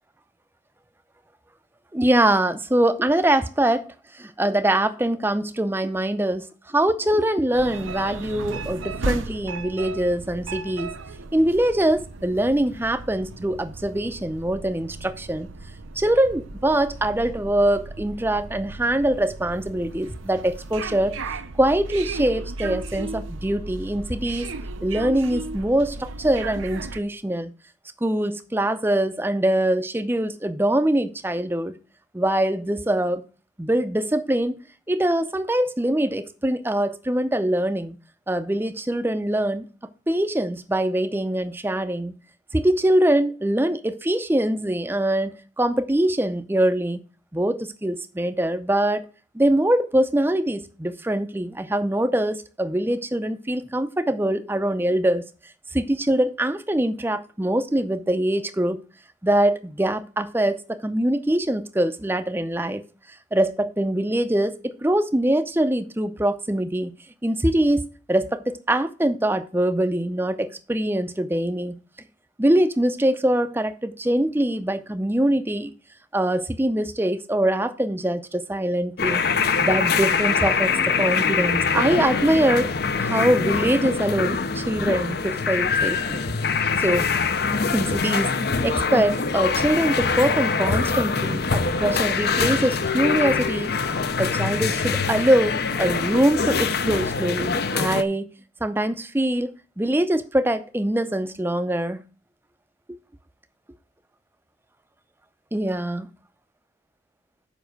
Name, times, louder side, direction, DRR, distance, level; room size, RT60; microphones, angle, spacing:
voice 1, 1.9-10.9 11.3-15.5 16.0-21.2 21.6-24.5 24.8-27.5 28.0-31.8 32.1-33.2 33.6-34.6 34.9-37.9 38.3-39.7 40.1-42.2 42.5-47.0 47.3-49.1 49.3-55.2 55.7-58.8 59.2-62.8 63.3-66.9 67.2-71.8 72.4-75.7 76.1-79.2 79.6-82.7 83.0-86.2 86.8-87.1 87.7-88.3 88.6-93.8 94.2-98.3 98.6-102.0 102.9-103.0 105.5-106.1, right 1 dB, 10° right, 0.5 m, -23 dB
sound 1, 7.5-27.0, right 3 dB, 85° right, 0.7 m, -35 dB
sound 2, 79.0-98.0, left 5 dB, 55° left, 0.6 m, -24 dB
7.1 x 5.5 x 6.4 m
head